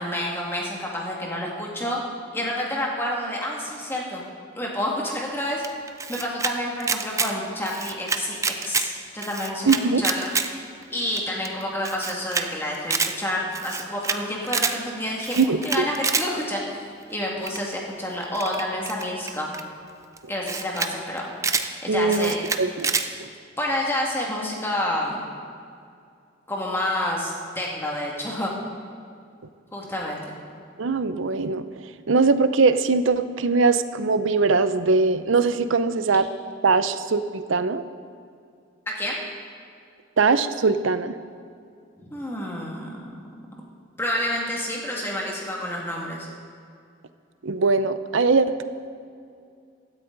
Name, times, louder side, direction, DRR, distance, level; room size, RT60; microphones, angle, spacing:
voice 1, 0.0-2.0 2.3-4.2 4.6-5.6 6.1-8.4 8.6-10.3 10.9-19.5 20.3-21.3 21.8-22.5 23.6-25.2 26.5-28.5 29.7-30.4 38.9-39.2 42.0-43.2 44.0-46.3, left 1 dB, 10° left, -2 dB, 2.1 m, -29 dB
Camera, 5.6-6.5 6.8-7.3 7.6-8.9 9.2-10.5 10.8-10.9 11.2-11.3 11.4-11.5 11.8-12.4 12.7-13.1 13.5-14.2 14.5-14.7 15.2-16.3 17.5-17.7 18.3-19.6 20.2-20.3 20.4-20.9 21.2-21.7 22.1-23.1, right 5 dB, 15° right, 0.5 m, -26 dB
voice 2, 9.7-10.0 15.4-15.9 21.9-23.3 30.8-31.6 32.1-36.3 36.6-37.8 40.2-41.1 47.4-48.6, right 4 dB, 80° right, 12 dB, 0.6 m, -21 dB
16.5 x 13.0 x 4.0 m, 2.3 s
head